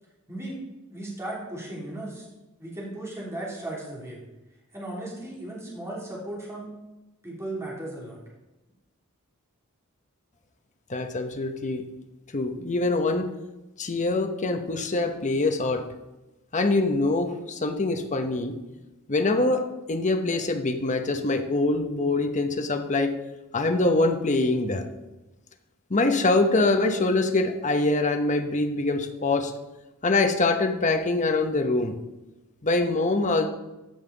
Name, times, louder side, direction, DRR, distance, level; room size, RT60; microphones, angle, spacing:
voice 1, 0.9-2.3 2.6-4.2 4.7-6.7 7.2-8.2, right 1 dB, 15° right, -5 dB, 3.0 m, -36 dB
voice 2, 10.9-11.8 12.3-13.3 13.8-15.8 16.5-18.6 19.1-23.1 23.5-24.8 25.9-29.5 30.0-31.9 32.6-33.5, left 2 dB, 35° left, 6 dB, 0.9 m, -24 dB
14.0 x 5.5 x 4.0 m, 1.0 s
head